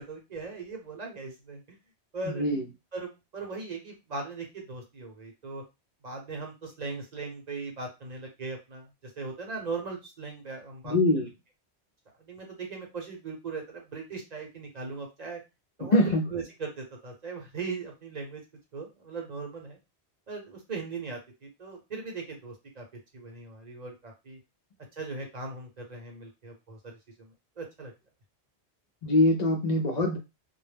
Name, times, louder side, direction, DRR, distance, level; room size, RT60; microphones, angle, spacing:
voice 1, 0.0-1.6 2.1-2.5 2.9-5.6 6.0-8.9 9.2-11.2 12.2-15.4 15.8-18.4 18.7-19.8 20.3-22.8 23.1-24.4 25.0-27.3 27.6-27.9, right 4 dB, 40° right, 1 dB, 0.8 m, -39 dB
voice 2, 2.2-2.7 10.8-11.3 15.8-16.3 29.0-30.2, left 1 dB, 55° left, 2 dB, 0.5 m, -23 dB
2.2 x 2.0 x 3.3 m, 0.25 s
omnidirectional pair, 1.1 m